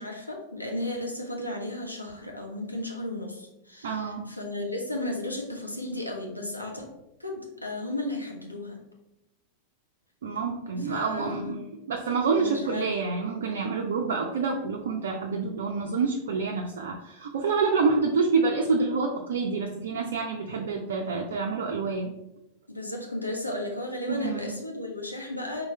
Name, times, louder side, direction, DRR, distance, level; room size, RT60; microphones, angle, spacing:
voice 1, 0.0-6.9 7.2-8.8 10.8-11.9 12.3-12.9 22.7-25.7, left 1 dB, 85° left, 0 dB, 0.7 m, -34 dB
voice 2, 3.8-4.3 10.2-11.6 11.9-22.1 24.1-24.5, right 4 dB, 60° right, 1 dB, 0.5 m, -27 dB
4.2 x 3.3 x 3.4 m, 0.87 s
figure-of-eight pair, 90°, 0 cm